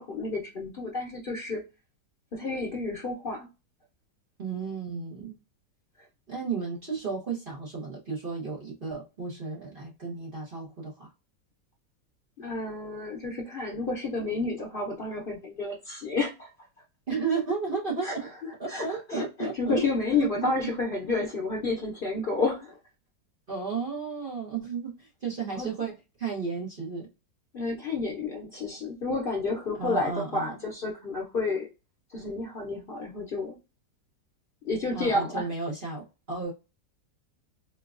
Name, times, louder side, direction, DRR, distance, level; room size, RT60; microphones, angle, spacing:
voice 1, 0.0-1.6 2.3-3.5 12.4-16.5 18.0-22.8 25.5-25.7 27.5-31.7 32.1-33.6 34.6-35.5, left 3 dB, 85° left, -1 dB, 0.4 m, -30 dB
voice 2, 4.4-5.3 6.3-11.1 17.1-18.3 18.6-19.9 20.2-20.5 23.5-27.1 29.8-30.5 34.9-36.5, right 5 dB, 40° right, -3 dB, 0.8 m, -33 dB
4.4 x 2.2 x 2.4 m, 0.28 s
omnidirectional pair, 1.9 m